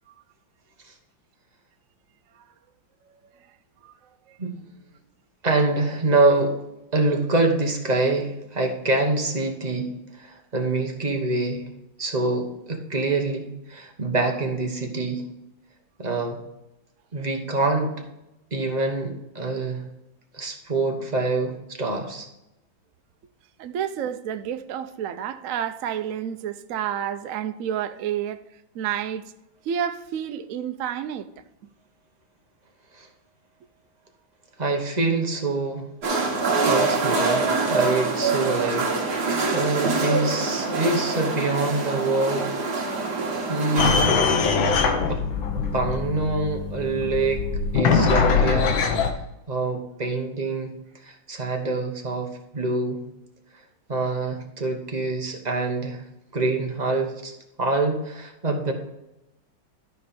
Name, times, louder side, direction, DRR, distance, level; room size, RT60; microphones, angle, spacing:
voice 1, 3.1-3.5 3.8-3.9 4.3-4.4 12.2-12.4 23.6-28.4 28.7-29.3 29.6-31.3, right 9 dB, 85° right, 0.7 m, -30 dB
voice 2, 5.4-6.5 6.9-11.7 12.0-15.2 16.0-16.4 17.1-17.9 18.5-19.8 20.3-22.3 33.0-33.1 34.6-35.9 36.7-42.5 42.7-43.2 43.5-44.2 45.1-45.2 45.6-47.4 47.7-48.8 49.5-50.7 51.0-53.0 53.9-56.0 56.3-57.3 57.6-58.7, right 2 dB, 25° right, 1.0 m, -25 dB
sound 1, 36.0-44.1, right 4 dB, 55° right, 2.2 m, -25 dB
sound 2, 43.8-49.1, left 5 dB, 75° left, 1.7 m, -22 dB
12.5 x 5.1 x 4.3 m
omnidirectional pair, 2.2 m